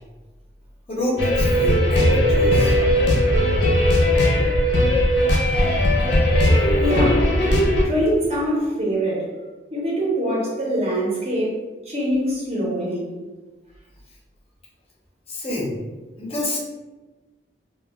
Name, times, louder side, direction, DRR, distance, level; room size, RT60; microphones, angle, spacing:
voice 1, 0.9-2.8 15.3-15.8 16.2-16.6, left 1 dB, 35° left, -4 dB, 0.5 m, -27 dB
sound 1, 1.2-7.8, left 1 dB, 80° left, 0.5 m, -18 dB
voice 2, 6.8-7.3 7.8-9.3 9.7-11.6 11.9-13.1, equal, 35° right, -4 dB, 0.6 m, -23 dB
2.1 x 2.1 x 3.3 m, 1.2 s
head